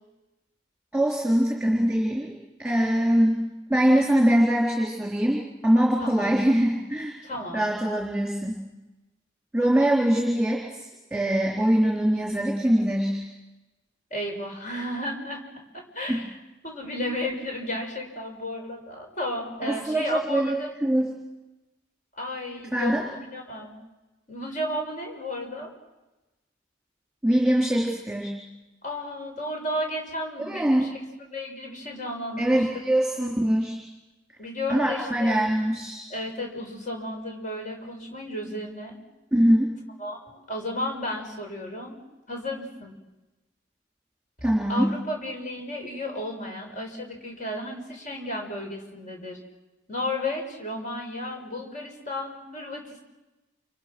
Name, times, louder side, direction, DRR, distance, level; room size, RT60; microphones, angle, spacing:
voice 1, 0.9-2.3 2.6-7.1 7.5-8.6 9.5-13.2 16.1-16.2 19.6-21.1 22.7-23.0 27.2-28.3 30.4-30.9 32.4-33.8 34.7-36.1 39.3-39.7 44.4-44.9, right 1 dB, 5° right, -3 dB, 4.3 m, -23 dB
voice 2, 6.0-6.4 7.2-7.6 14.1-15.4 15.7-16.4 16.6-20.7 22.1-23.7 24.3-25.7 28.8-31.0 31.3-32.6 34.4-35.4 36.1-39.0 40.0-42.0 42.3-42.9 44.7-49.4 49.9-53.0, left 1 dB, 40° left, 1 dB, 6.9 m, -33 dB
30.0 x 29.0 x 6.4 m, 1.1 s
head